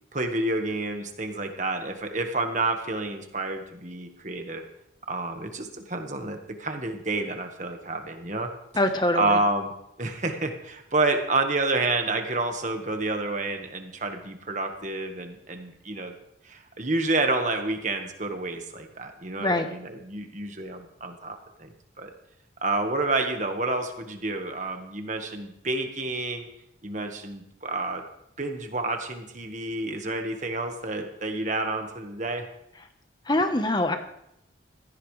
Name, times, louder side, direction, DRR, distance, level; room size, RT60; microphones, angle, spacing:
voice 1, 0.1-4.6 5.1-8.5 9.1-9.7 10.0-16.1 16.4-21.7 22.0-22.1 22.6-26.5 26.8-28.0 28.4-32.4, right 2 dB, 40° right, 5 dB, 1.5 m, -29 dB
voice 2, 8.7-9.4 19.4-19.7 33.3-34.0, left 1 dB, 20° left, 7 dB, 1.1 m, -24 dB
16.5 x 14.0 x 3.3 m, 0.81 s
head